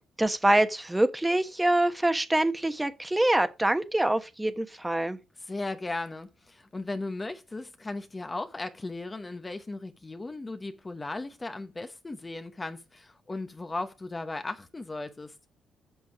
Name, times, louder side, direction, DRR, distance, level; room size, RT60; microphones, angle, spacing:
voice 1, 0.2-5.2, right 1 dB, 10° right, 1.1 m, -25 dB
voice 2, 5.4-15.4, left 2 dB, 20° left, 0.8 m, -36 dB
7.9 x 6.2 x 4.8 m
cardioid pair, 90°, 0 cm